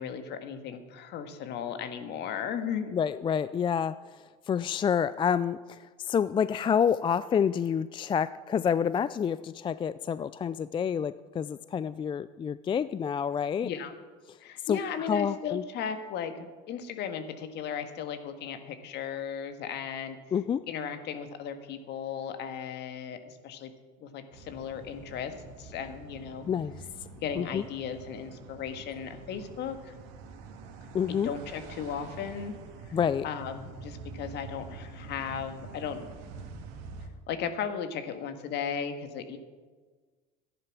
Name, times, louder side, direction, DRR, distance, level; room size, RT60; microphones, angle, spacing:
voice 1, 0.0-2.9 13.6-13.9 14.4-20.2 20.7-23.7 24.0-26.5 27.2-29.9 31.1-32.5 32.8-33.0 33.2-36.1 37.3-39.4, left 7 dB, 55° left, 8 dB, 1.6 m, -36 dB
voice 2, 2.9-4.0 4.5-13.7 14.7-15.6 20.3-20.6 26.5-26.8 27.4-27.6 30.9-31.3 32.9-33.3, left 7 dB, 25° left, 15 dB, 0.4 m, -28 dB
sound 1, 24.3-37.1, right 4 dB, 70° right, 2.1 m, -46 dB
13.5 x 10.5 x 6.0 m, 1.4 s
hypercardioid pair, 80°, 21 cm